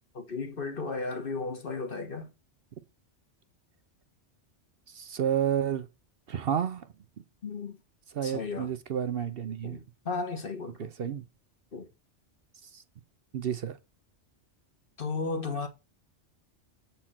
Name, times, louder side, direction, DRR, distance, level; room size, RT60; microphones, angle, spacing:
voice 1, 0.1-2.3 7.4-7.8 8.2-8.7 9.6-10.9 11.7-11.9 15.0-15.7, left 4 dB, 50° left, 1.5 m, -34 dB
voice 2, 4.9-5.9 6.3-6.9 8.1-9.8 10.8-11.2 12.6-12.8 13.3-13.8, right 9 dB, 60° right, 0.8 m, -30 dB
7.5 x 4.4 x 5.7 m
omnidirectional pair, 1.2 m